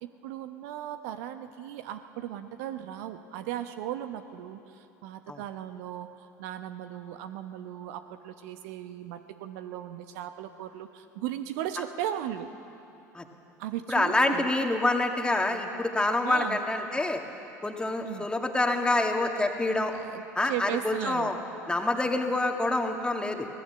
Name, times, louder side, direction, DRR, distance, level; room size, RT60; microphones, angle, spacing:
voice 1, 0.0-12.5 13.6-14.6 16.2-16.6 18.0-18.3 19.9-21.3, right 11 dB, 60° right, 9 dB, 0.9 m, -37 dB
voice 2, 13.9-17.2 17.6-19.9 20.4-21.4 21.7-23.5, left 2 dB, 10° left, 3 dB, 2.0 m, -27 dB
24.0 x 18.0 x 6.9 m, 2.9 s
figure-of-eight pair, 70°, 9 cm